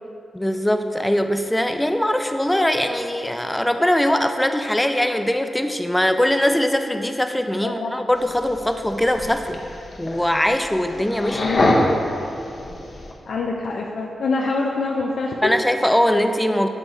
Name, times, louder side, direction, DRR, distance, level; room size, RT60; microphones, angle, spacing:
voice 1, 0.3-9.6 10.0-11.4 15.4-16.7, left 1 dB, 10° left, 7 dB, 0.4 m, -21 dB
voice 2, 7.6-7.9 11.2-11.9 13.3-15.5, left 3 dB, 80° left, -1 dB, 0.4 m, -25 dB
sound 1, 8.2-13.1, left 1 dB, 45° left, 0.8 m, -25 dB
8.2 x 3.5 x 4.0 m, 2.7 s
cardioid pair, 75°, 0 cm